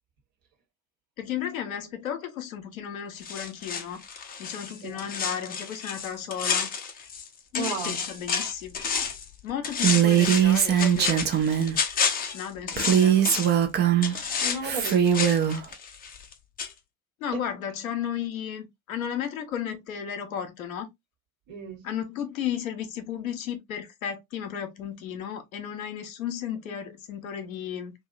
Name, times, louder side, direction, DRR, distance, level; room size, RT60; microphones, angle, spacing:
voice 1, 1.2-4.0 4.4-6.7 7.5-8.8 9.4-11.2 12.3-13.3 17.2-20.9 21.8-27.9, left 9 dB, 75° left, 0.8 m, -34 dB
sound 1, 3.2-7.3 7.5-9.3 9.6-13.6 14.0-16.3 16.6-16.7, left 6 dB, 20° left, 0.6 m, -30 dB
voice 2, 4.8-5.1 7.5-8.0 14.4-15.3 17.3-17.4 21.5-21.8, right 4 dB, 55° right, 1.3 m, -34 dB
Female speech woman speaking, 9.8-11.8 12.8-14.2 14.6-15.6, right 9 dB, 25° right, 0.5 m, -21 dB
2.7 x 2.5 x 2.4 m
figure-of-eight pair, 65°, 42 cm